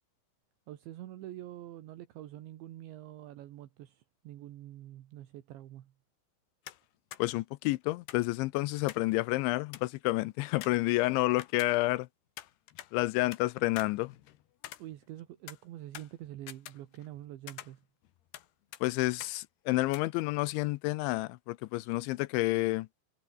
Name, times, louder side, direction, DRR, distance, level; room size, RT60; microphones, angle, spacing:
voice 1, 0.7-5.9 14.8-17.8, right 13 dB, 70° right, 3.7 m, -46 dB
sound 1, 6.7-6.9 7.1-7.2 8.1-9.1 9.4-9.5 9.7-10.0 10.6-12.0 12.4-13.4 13.8-15.2 15.5-17.2 17.5-18.5 18.7-18.8 19.2-19.4 19.9-20.0, left 13 dB, 65° left, 3.1 m, -47 dB
voice 2, 7.2-12.1 12.9-14.1 18.8-22.9, left 20 dB, 80° left, 2.8 m, -29 dB
omnidirectional pair, 5.8 m